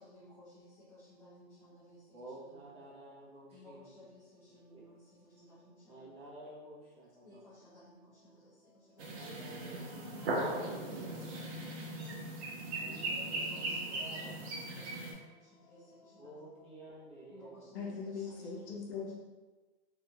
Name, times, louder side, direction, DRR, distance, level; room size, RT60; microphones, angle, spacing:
voice 1, 0.1-0.7 1.2-2.0 3.5-4.2 4.6-4.8 5.4-5.5 7.2-7.4 10.1-10.2 13.1-13.2 13.5-13.8 14.1-14.3 14.8-14.9 15.7-15.8 17.3-17.6 18.2-18.7, left 1 dB, 10° left, -13 dB, 0.3 m, -55 dB
voice 2, 2.1-3.9 4.7-4.9 5.9-7.4 9.2-11.6 12.7-14.5 16.2-17.7 18.2-18.3, right 1 dB, 20° right, -9 dB, 0.8 m, -52 dB
sound 1, 9.0-15.1, right 2 dB, 70° right, 0.9 m, -38 dB
voice 3, 17.7-19.1, left 5 dB, 65° left, -1 dB, 0.7 m, -40 dB
2.9 x 2.6 x 2.2 m, 1.2 s
hypercardioid pair, 145°, 34 cm